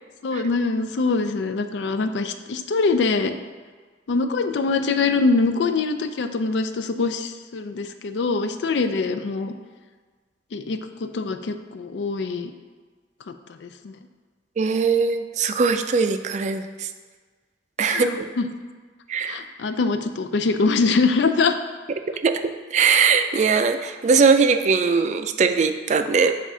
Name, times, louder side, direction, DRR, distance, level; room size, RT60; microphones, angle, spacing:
voice 1, 0.2-3.3 4.1-9.5 10.5-12.5 13.6-13.9 17.9-18.5 19.3-21.6, left 4 dB, 85° left, 9 dB, 0.4 m, -23 dB
voice 2, 14.6-16.9 17.8-18.3 19.1-19.4 22.2-26.3, right 5 dB, 40° right, 9 dB, 0.3 m, -20 dB
7.2 x 2.5 x 5.5 m, 1.5 s
head